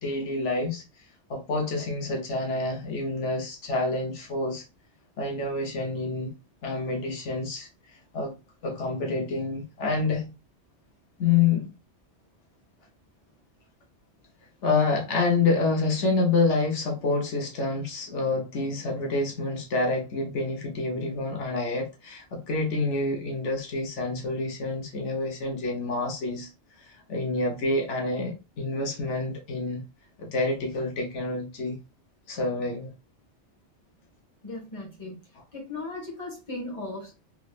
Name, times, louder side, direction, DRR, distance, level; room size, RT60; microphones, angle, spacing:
voice 1, 0.0-1.0 1.3-4.6 5.2-6.3 6.6-8.3 8.6-10.3 11.2-11.7 14.6-26.5 26.8-29.8 30.2-31.8 32.3-32.9, left 3 dB, 85° left, 1.3 m, -28 dB
voice 2, 34.4-35.2 35.5-37.4, left 2 dB, 30° left, 1.6 m, -37 dB
3.8 x 3.1 x 2.4 m
omnidirectional pair, 1.2 m